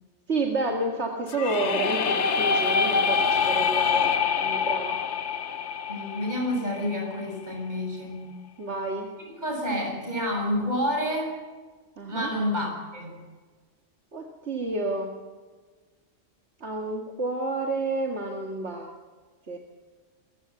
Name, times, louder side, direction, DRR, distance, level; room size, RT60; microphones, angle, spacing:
voice 1, 0.3-5.0 8.6-9.1 12.0-12.3 14.1-15.1 16.6-18.9 19.5-19.6, right 2 dB, 75° right, 1 dB, 2.3 m, -30 dB
sound 1, 1.3-7.1, left 6 dB, 85° left, 1.3 m, -25 dB
voice 2, 5.9-8.3 9.2-11.4 12.1-13.2, left 1 dB, 40° right, 1 dB, 7.2 m, -29 dB
25.0 x 15.5 x 8.0 m, 1.4 s
omnidirectional pair, 1.2 m